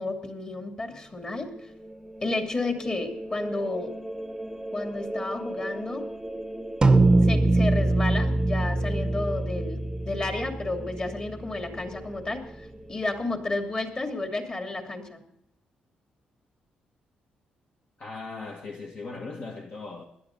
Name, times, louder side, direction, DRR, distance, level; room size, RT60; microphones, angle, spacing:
voice 1, 0.0-1.7 2.2-3.9 4.7-6.0 7.2-15.2, left 2 dB, 30° left, 2.7 m, -32 dB
sound 1, 1.1-13.0, right 1 dB, ahead, 1.1 m, -39 dB
sound 2, 6.8-11.4, right 2 dB, 25° right, 0.8 m, -23 dB
voice 2, 18.0-20.1, left 3 dB, 50° left, 1.7 m, -38 dB
18.0 x 11.5 x 3.9 m
cardioid pair, 85°, 3 cm